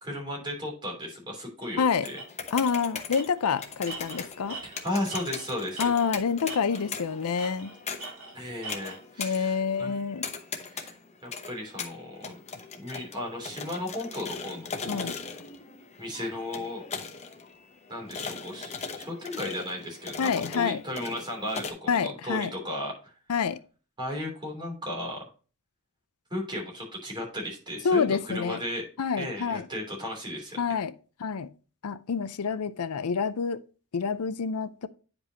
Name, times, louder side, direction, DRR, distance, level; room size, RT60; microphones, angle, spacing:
voice 1, 0.0-2.2 4.6-5.9 8.3-10.0 10.6-11.0 11.2-12.3 12.8-15.1 16.0-16.8 17.9-23.1 24.0-25.2 26.3-28.8 29.2-30.6, left 1 dB, 20° right, 3.2 m, -35 dB
Tools, 1.6-1.7 2.1-2.3 2.6-2.8 3.1-6.2 6.5-7.0 7.4-9.0, right 3 dB, 75° right, 2.4 m, -42 dB
voice 2, 1.8-2.1 2.5-4.6 5.8-7.7 9.2-10.3 14.9-15.1 20.2-20.8 21.9-22.5 23.3-23.6 27.8-28.6 29.0-29.7 30.6-30.9 31.2-31.5 31.8-33.6 33.9-34.9, left 6 dB, 85° left, 0.5 m, -27 dB
sound 1, 1.9-21.7, left 5 dB, 30° left, 0.8 m, -40 dB
9.5 x 5.2 x 2.9 m
head